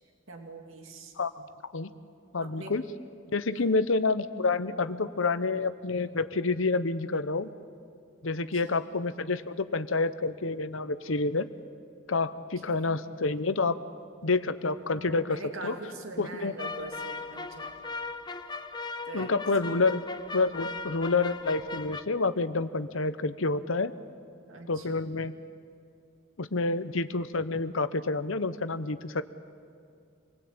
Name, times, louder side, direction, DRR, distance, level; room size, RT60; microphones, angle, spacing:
voice 1, 0.3-1.1 2.4-2.8 3.6-3.7 8.3-8.8 12.3-13.0 14.6-17.7 19.1-19.3 19.6-19.8 20.5-20.9 24.5-25.0, right 2 dB, 85° right, 3 dB, 2.5 m, -43 dB
voice 2, 1.2-1.9 2.3-2.8 3.3-7.5 8.2-11.5 12.1-13.8 14.2-15.7 16.2-16.5 19.1-20.0 20.3-23.9 24.7-25.3 26.4-29.2, left 3 dB, 80° left, 12 dB, 1.0 m, -28 dB
sound 1, 16.6-22.0, left 4 dB, 20° left, 0.8 m, -38 dB
26.5 x 19.5 x 8.8 m, 2.4 s
head